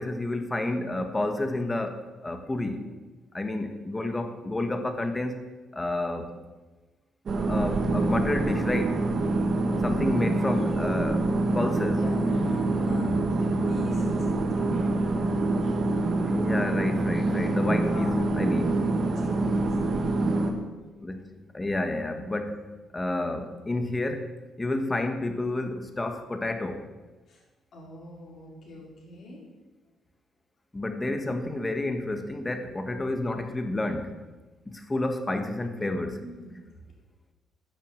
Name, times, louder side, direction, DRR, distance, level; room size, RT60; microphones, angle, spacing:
voice 1, 0.0-2.9 3.3-5.4 5.7-6.3 7.4-9.0 9.8-12.0 16.3-18.8 21.0-21.3 21.5-22.7 22.9-24.3 24.6-26.9 30.7-34.2 34.6-36.2, left 2 dB, 20° left, 7 dB, 1.4 m, -30 dB
sound 1, 7.3-20.5, right 2 dB, 50° right, 1.5 m, -26 dB
voice 2, 11.9-15.0 17.9-20.5 27.3-27.4 27.7-29.4 36.2-36.6, left 1 dB, 60° left, -3 dB, 4.2 m, -42 dB
10.0 x 7.0 x 7.4 m, 1.2 s
cardioid pair, 90°, 0 cm